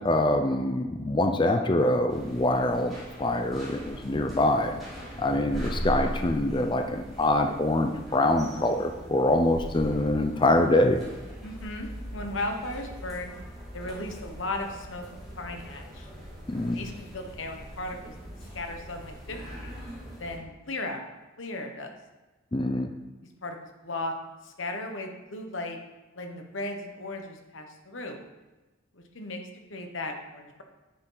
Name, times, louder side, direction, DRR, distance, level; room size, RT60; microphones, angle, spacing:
voice 1, 0.0-4.7 5.2-11.0 16.5-16.8 22.5-22.9, left 1 dB, 25° left, 5 dB, 0.5 m, -24 dB
sound 1, 2.1-20.4, equal, ahead, 3.2 m, -40 dB
voice 2, 11.4-13.3 13.7-16.1 16.7-18.1 18.5-19.8 20.2-21.0 21.4-22.0 23.4-24.1 24.4-25.8 26.1-28.2 28.9-29.4 29.7-30.6, left 2 dB, 65° left, 4 dB, 1.2 m, -36 dB
9.7 x 6.7 x 3.9 m, 1.1 s
head